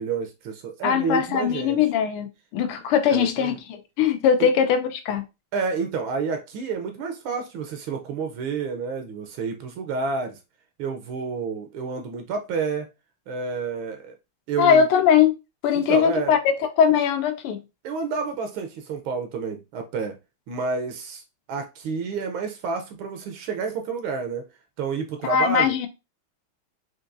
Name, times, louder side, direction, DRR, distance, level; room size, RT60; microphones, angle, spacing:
voice 1, 0.0-1.8 3.1-3.5 4.4-4.5 5.5-10.4 10.8-12.9 13.3-14.2 14.5-14.9 15.7-16.4 17.8-20.2 20.5-21.2 21.5-24.5 24.8-25.7, right 5 dB, 75° right, 1.3 m, -29 dB
voice 2, 0.8-2.3 2.5-5.2 14.6-15.3 15.6-17.6 25.2-25.9, left 7 dB, 90° left, 1.5 m, -20 dB
4.6 x 2.6 x 2.5 m
omnidirectional pair, 2.4 m